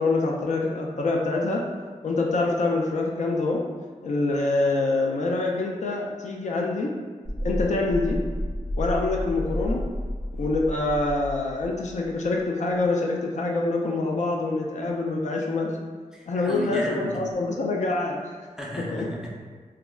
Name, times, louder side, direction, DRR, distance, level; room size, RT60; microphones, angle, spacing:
voice 1, 0.0-1.6 2.0-3.6 4.0-6.9 7.4-8.2 8.8-9.8 10.4-15.8 16.3-18.4 18.9-19.1, left 2 dB, 65° left, -1 dB, 0.4 m, -25 dB
sound 1, 7.2-12.1 12.4-12.5, equal, 85° left, 0.8 m, -31 dB
voice 2, 16.1-17.2 18.6-19.3, equal, 5° right, -4 dB, 0.4 m, -34 dB
2.3 x 2.0 x 3.5 m, 1.5 s
wide cardioid pair, 125°, 13 cm